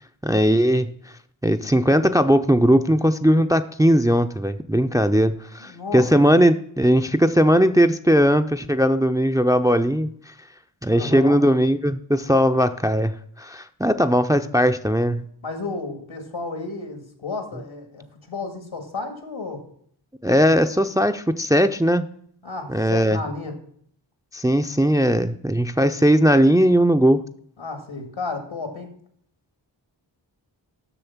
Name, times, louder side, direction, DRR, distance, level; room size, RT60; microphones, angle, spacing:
voice 1, 0.2-0.9 1.4-10.1 10.8-13.1 13.4-15.2 20.2-22.0 22.7-23.2 24.3-27.2, equal, 10° right, 8 dB, 0.4 m, -18 dB
voice 2, 5.6-6.1 10.9-11.4 15.4-19.6 22.4-23.5 27.6-28.9, left 3 dB, 80° left, 5 dB, 2.1 m, -32 dB
7.0 x 6.5 x 7.1 m, 0.64 s
wide cardioid pair, 50°, 47 cm